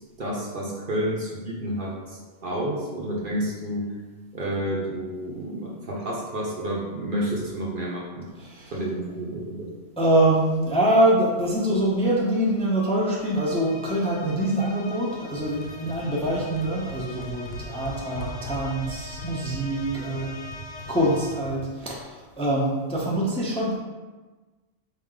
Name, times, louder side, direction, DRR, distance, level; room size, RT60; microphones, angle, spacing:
voice 1, 0.2-3.9 4.3-8.3 8.7-9.7, right 1 dB, 50° right, -3 dB, 0.8 m, -30 dB
voice 2, 8.4-8.8 10.0-20.3 20.9-23.8, right 1 dB, 5° left, -5 dB, 0.5 m, -24 dB
sound 1, 13.2-21.7, left 3 dB, 90° left, 1.0 m, -43 dB
sound 2, 15.3-21.7, left 1 dB, 60° left, 0.9 m, -40 dB
4.4 x 3.1 x 3.8 m, 1.3 s
omnidirectional pair, 1.2 m